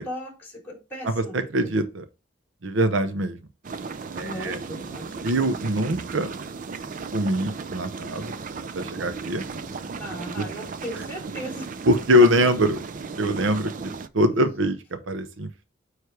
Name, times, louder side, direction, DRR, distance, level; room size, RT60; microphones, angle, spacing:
voice 1, 0.0-1.3 1.6-1.7 4.2-5.3 10.0-11.7, equal, 10° left, 3.2 m, -37 dB
voice 2, 1.0-2.1 2.6-3.4 4.2-4.6 5.2-6.3 7.1-8.3 8.7-9.4 10.4-10.5 11.8-12.8 13.2-15.6, equal, 70° right, 0.7 m, -23 dB
sound 1, 3.6-14.1, right 4 dB, 40° right, 0.4 m, -36 dB
9.2 x 3.2 x 3.3 m
head